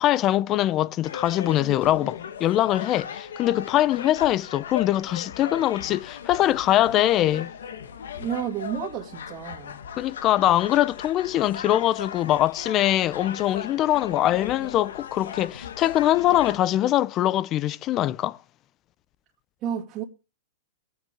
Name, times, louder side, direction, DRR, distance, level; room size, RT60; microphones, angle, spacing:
voice 1, 0.0-7.5 10.0-18.4, left 13 dB, 30° left, 0.6 m, -22 dB
sound 1, 1.0-16.6, left 7 dB, 85° left, 1.3 m, -38 dB
voice 2, 8.2-9.8 19.6-20.0, right 9 dB, 35° right, 2.1 m, -31 dB
21.0 x 9.3 x 3.6 m
hypercardioid pair, 140°, 0 cm